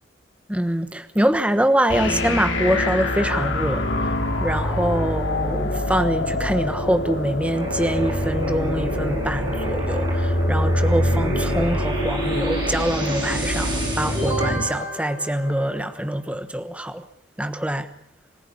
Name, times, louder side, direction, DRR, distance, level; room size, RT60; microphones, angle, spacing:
voice 1, 0.5-4.1 4.4-13.7 14.0-17.0 17.4-17.9, right 1 dB, 5° right, 10 dB, 1.2 m, -24 dB
sound 1, 1.9-14.7, left 1 dB, 90° left, 4.7 m, -25 dB
sound 2, 7.5-16.2, equal, 25° right, 7.4 m, -31 dB
26.0 x 16.0 x 9.9 m, 0.68 s
head